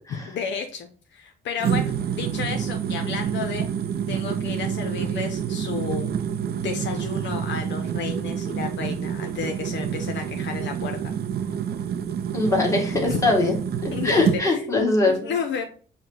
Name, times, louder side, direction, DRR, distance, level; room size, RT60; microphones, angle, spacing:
voice 1, 0.3-3.7 4.1-6.1 6.5-11.1 13.1-13.2 13.9-15.6, left 6 dB, 65° left, 4 dB, 0.7 m, -32 dB
sound 1, 1.6-14.4, right 8 dB, 55° right, 0.5 m, -28 dB
voice 2, 12.3-13.5 13.8-15.3, left 2 dB, 15° left, -1 dB, 1.6 m, -22 dB
4.9 x 2.2 x 4.4 m, 0.40 s
cardioid pair, 90°, 20 cm